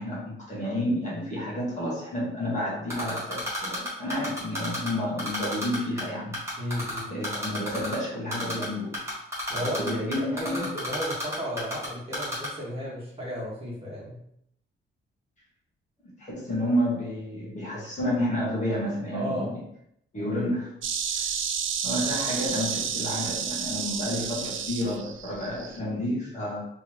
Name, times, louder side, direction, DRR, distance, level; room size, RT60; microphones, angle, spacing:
voice 1, 0.0-6.4 7.1-9.0 9.6-10.7 16.2-19.6 20.1-20.7 21.1-21.3 21.8-26.6, equal, 35° left, -6 dB, 1.4 m, -30 dB
Typing, 2.9-4.9 5.2-6.0 6.3-7.9 8.3-8.7 8.9-11.9 12.1-12.5, left 1 dB, 10° right, 1.5 m, -31 dB
voice 2, 6.6-7.1 9.5-14.2 19.1-19.6, equal, 30° right, -6 dB, 1.4 m, -34 dB
Insect, 20.8-25.8, right 7 dB, 70° right, 0.4 m, -31 dB
3.5 x 3.1 x 2.9 m, 0.72 s
wide cardioid pair, 145°, 21 cm